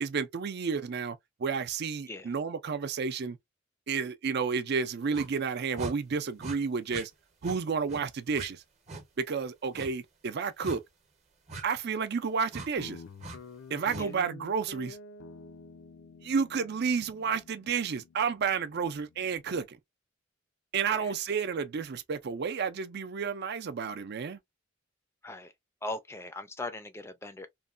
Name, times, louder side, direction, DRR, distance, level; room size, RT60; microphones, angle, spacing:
voice 1, 0.0-3.4 3.9-7.1 7.4-8.6 9.2-10.8 11.6-13.0 13.7-15.0 16.2-19.8 20.7-24.4, right 5 dB, 55° right, 0.5 m, -31 dB
sound 1, 5.1-5.3 5.8-6.0 6.4-6.6 6.9-7.1 7.4-7.6 7.9-8.0 8.3-8.5 8.9-9.0 9.7-9.9 10.6-10.8 11.5-11.6 12.5-12.7 13.2-13.4 13.9-14.1, right 2 dB, 35° right, 0.8 m, -40 dB
Guitar, 12.8-19.5, left 4 dB, 80° left, 0.4 m, -49 dB
voice 2, 25.8-27.5, left 2 dB, 15° left, 0.4 m, -39 dB
3.1 x 2.2 x 2.4 m
head